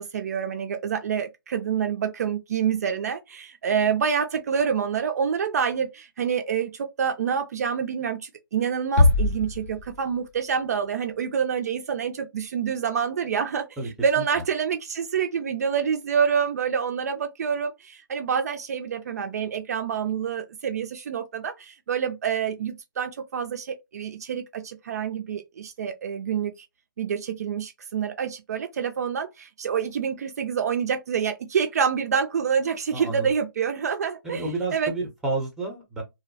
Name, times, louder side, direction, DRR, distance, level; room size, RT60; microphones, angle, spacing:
voice 1, 0.0-26.5 27.0-34.9, right 7 dB, 45° right, 0.4 m, -27 dB
sound 1, 9.0-10.6, left 2 dB, 40° left, 0.4 m, -22 dB
voice 2, 32.9-33.3 34.3-36.0, right 2 dB, 5° right, 0.6 m, -30 dB
2.7 x 2.0 x 2.6 m
hypercardioid pair, 150°, 12 cm